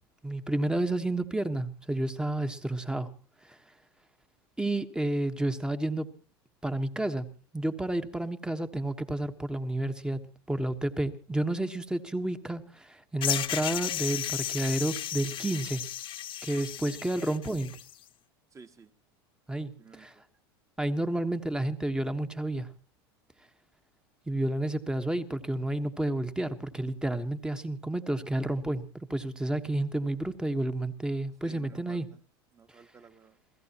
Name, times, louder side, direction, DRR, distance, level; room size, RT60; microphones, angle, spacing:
voice 1, 0.2-3.1 3.5-3.6 4.6-6.1 6.6-7.3 7.5-15.8 16.4-17.7 19.5-19.7 20.0-20.1 20.8-22.7 24.3-32.1, right 1 dB, 5° right, 1.3 m, -30 dB
sound 1, 13.2-17.9, left 11 dB, 40° left, 1.2 m, -34 dB
voice 2, 18.5-18.9 19.8-20.2 31.4-32.2 32.5-33.4, right 5 dB, 25° right, 1.6 m, -53 dB
29.0 x 16.0 x 3.0 m
hypercardioid pair, 100°, 13 cm